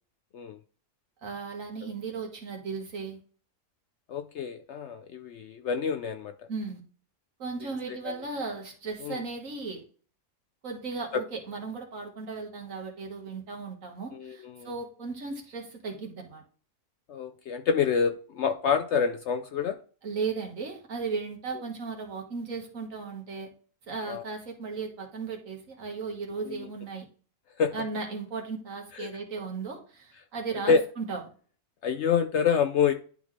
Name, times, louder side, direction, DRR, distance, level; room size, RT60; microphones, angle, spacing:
voice 1, 1.2-3.2 6.5-6.8 7.4-9.8 10.6-16.4 20.0-23.5 23.9-27.1 27.7-31.2, right 4 dB, 60° right, 1.9 m, -36 dB
voice 2, 4.1-6.3 7.6-8.1 9.0-9.2 11.1-11.2 14.1-14.7 17.1-19.8 24.1-24.2 26.5-26.7 27.6-27.7 28.9-29.1 30.7-30.8 31.8-32.9, left 6 dB, 65° left, 0.7 m, -27 dB
11.0 x 3.9 x 3.2 m
omnidirectional pair, 1.5 m